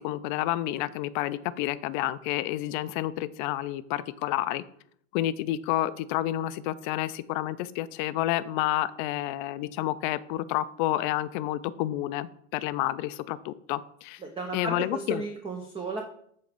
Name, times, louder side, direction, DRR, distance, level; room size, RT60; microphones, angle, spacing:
voice 1, 0.0-4.6 5.1-14.2 14.5-15.2, left 14 dB, 40° left, 15 dB, 0.4 m, -30 dB
voice 2, 14.2-16.0, right 3 dB, 15° right, 3 dB, 0.7 m, -34 dB
7.7 x 3.2 x 5.0 m, 0.66 s
hypercardioid pair, 105°, 39 cm